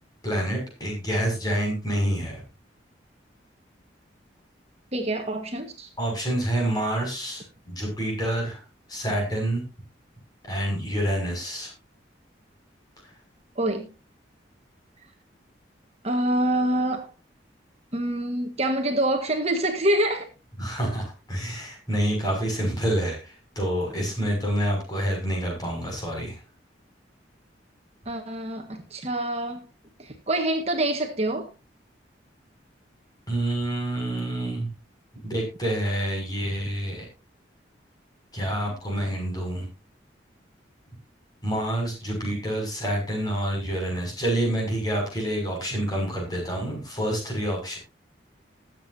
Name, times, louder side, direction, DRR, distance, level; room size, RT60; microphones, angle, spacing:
voice 1, 0.2-2.4 6.0-8.6 8.9-9.6 10.4-11.7 13.0-13.1 20.6-26.4 33.3-34.7 35.2-37.0 38.3-39.7 41.4-47.8, right 1 dB, 20° left, 0 dB, 6.6 m, -27 dB
voice 2, 4.9-5.9 13.5-13.9 16.0-17.1 17.9-20.3 28.0-29.7 30.0-31.5, right 1 dB, 35° right, 4 dB, 1.5 m, -26 dB
21.0 x 8.0 x 2.7 m, 0.29 s
head